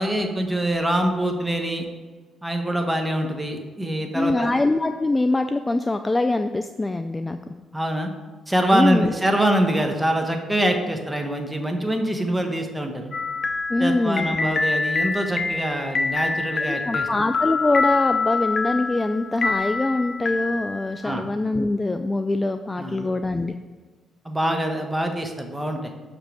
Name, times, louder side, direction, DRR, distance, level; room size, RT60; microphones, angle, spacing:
voice 1, 0.0-1.8 2.4-4.5 7.7-8.1 8.5-13.1 13.8-17.1 21.0-21.3 22.8-23.1 24.2-25.9, right 1 dB, 10° right, 3 dB, 1.2 m, -24 dB
voice 2, 4.1-7.4 8.7-9.1 13.7-14.4 16.8-23.5, left 2 dB, 20° left, 8 dB, 0.3 m, -23 dB
sound 1, 13.1-21.0, left 4 dB, 45° left, 0.7 m, -26 dB
6.4 x 5.2 x 6.1 m, 1.4 s
cardioid pair, 90°, 0 cm